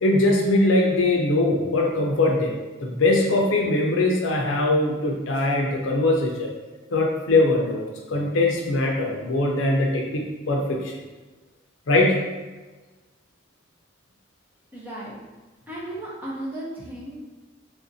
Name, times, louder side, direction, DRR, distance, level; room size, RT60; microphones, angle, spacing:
voice 1, 0.0-2.5 2.8-6.5 6.9-10.9 11.9-12.2, left 2 dB, 80° left, 0 dB, 0.5 m, -21 dB
voice 2, 14.7-15.2 15.7-17.2, right 1 dB, 10° right, -7 dB, 0.7 m, -35 dB
3.4 x 2.5 x 2.6 m, 1.2 s
head